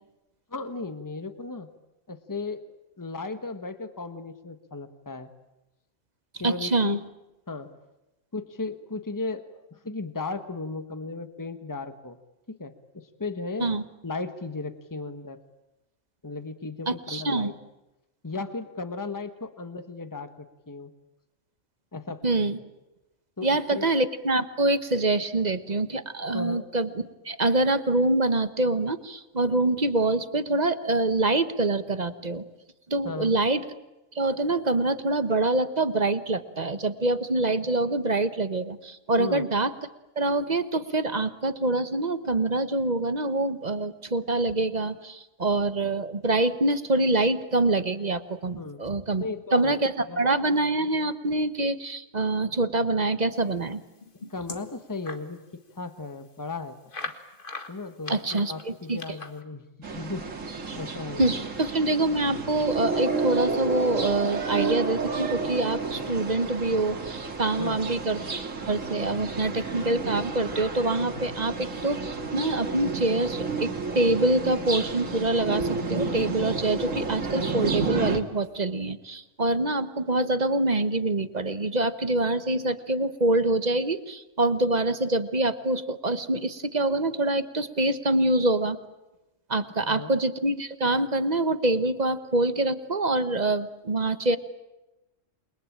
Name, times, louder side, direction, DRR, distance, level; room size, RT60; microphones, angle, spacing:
voice 1, 0.5-1.7 2.1-2.6 3.0-5.3 6.4-7.0 7.5-7.7 8.3-12.2 12.5-13.7 14.0-15.4 16.2-17.5 18.2-20.9 21.9-22.6 23.4-23.8 26.3-26.7 33.0-33.4 39.2-39.4 48.6-48.8 49.2-50.2 54.3-56.8 57.7-59.6 59.9-60.3 60.5-61.5 67.6-68.0 89.8-90.1, left 3 dB, 15° left, 10 dB, 1.4 m, -36 dB
voice 2, 6.4-7.0 13.6-13.8 16.9-17.5 22.2-22.6 23.4-32.4 32.9-33.6 34.1-39.7 40.2-49.2 49.5-53.8 58.1-59.0 61.2-68.2 68.7-88.8 89.5-94.4, right 2 dB, 35° right, 11 dB, 1.3 m, -25 dB
sound 1, 53.7-55.3 55.7-55.8 56.1-56.2 56.9-59.4, left 3 dB, 40° left, 1.9 m, -40 dB
sound 2, 59.8-78.2, right 4 dB, 70° right, 2.5 m, -31 dB
28.5 x 22.5 x 8.8 m, 0.99 s
omnidirectional pair, 1.4 m